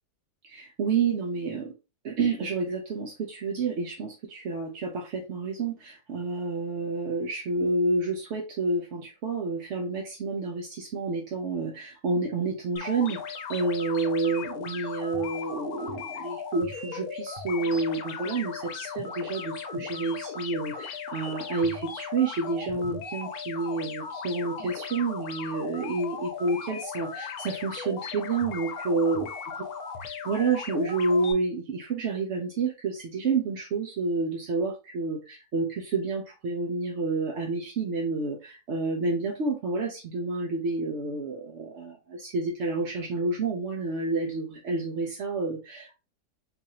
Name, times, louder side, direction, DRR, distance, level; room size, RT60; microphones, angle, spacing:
voice 1, 0.4-1.7 2.0-29.3 30.0-45.9, right 3 dB, 60° right, -1 dB, 0.8 m, -29 dB
sound 1, 12.8-31.3, left 6 dB, 75° left, 1.1 m, -37 dB
3.9 x 2.6 x 2.8 m, 0.30 s
omnidirectional pair, 1.7 m